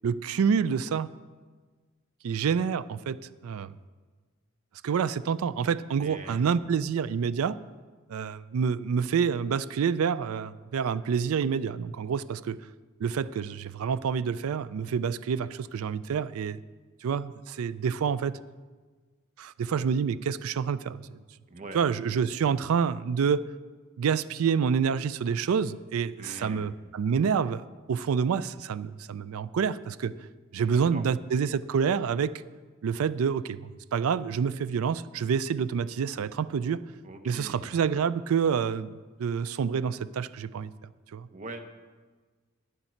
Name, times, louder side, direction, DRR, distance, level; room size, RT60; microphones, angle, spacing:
voice 1, 0.0-1.1 2.2-3.2 3.4-3.7 4.8-7.6 8.1-12.6 13.0-16.6 17.0-18.3 19.4-21.0 21.7-23.4 24.0-27.6 27.9-30.1 30.5-32.3 32.8-36.8 37.2-38.9 39.2-40.7 41.1-41.3, right 6 dB, 85° right, 17 dB, 0.4 m, -27 dB
voice 2, 6.0-6.6 21.5-21.8 26.2-26.7 30.7-31.0 37.0-37.6 41.3-41.6, right 2 dB, 35° right, 6 dB, 0.7 m, -42 dB
9.7 x 9.7 x 4.4 m, 1.4 s
head